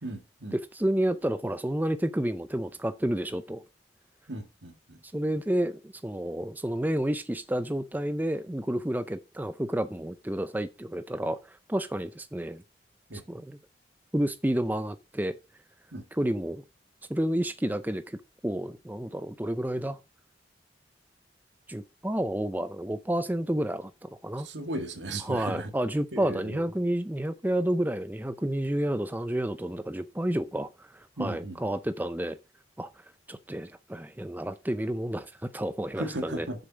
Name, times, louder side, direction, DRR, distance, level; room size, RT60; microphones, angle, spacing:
voice 1, 0.0-0.6 4.3-5.0 13.1-13.2 15.9-16.1 24.4-25.7 26.1-26.6 31.2-31.6 36.0-36.6, right 1 dB, 80° right, 1.9 m, -36 dB
voice 2, 0.5-3.6 5.1-12.6 13.3-13.6 14.1-15.4 16.1-16.6 17.1-20.0 21.7-24.5 25.2-32.4 32.8-32.9 33.3-36.5, right 1 dB, 10° right, 0.5 m, -30 dB
7.7 x 7.0 x 5.1 m
head